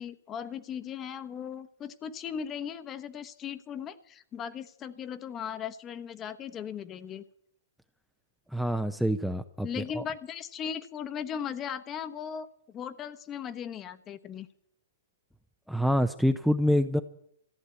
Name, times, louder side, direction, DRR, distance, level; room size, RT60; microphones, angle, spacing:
voice 1, 0.0-7.2 9.6-14.5, left 8 dB, 25° left, 12 dB, 1.1 m, -38 dB
voice 2, 8.5-9.7 10.0-10.1 15.7-17.0, equal, ahead, 9 dB, 0.7 m, -26 dB
14.5 x 10.5 x 8.3 m, 0.68 s
hypercardioid pair, 125°, 0 cm